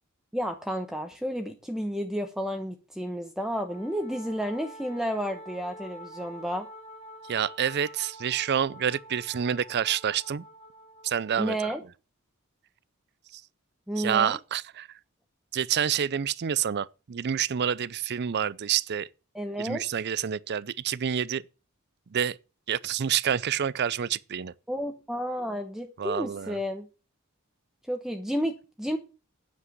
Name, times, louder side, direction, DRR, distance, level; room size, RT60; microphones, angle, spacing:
voice 1, 0.3-6.7 11.4-11.8 13.9-14.4 19.3-19.8 24.7-26.9 27.9-29.0, equal, ahead, 1.0 m, -31 dB
Wind instrument woodwind instrument, 3.7-11.7, equal, 30° left, 2.9 m, -47 dB
voice 2, 7.2-10.4 11.0-11.6 13.3-13.4 14.0-15.0 15.5-19.1 19.6-21.4 22.1-22.4 22.7-24.5 26.0-26.6, right 8 dB, 50° right, 0.5 m, -28 dB
9.8 x 7.4 x 7.4 m
head